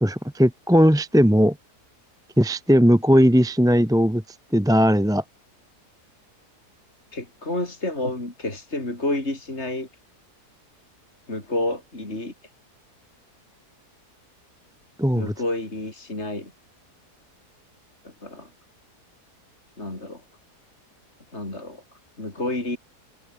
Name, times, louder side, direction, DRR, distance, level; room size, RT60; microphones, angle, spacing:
voice 1, 0.0-1.5 2.4-4.2 4.5-5.2 15.0-15.3, equal, 5° right, 0.9 m, -18 dB
voice 2, 7.1-9.9 11.3-12.3 15.1-16.5 18.0-18.5 19.8-20.2 21.3-21.8 22.2-22.8, left 2 dB, 40° left, 5.5 m, -29 dB
omnidirectional pair, 1.7 m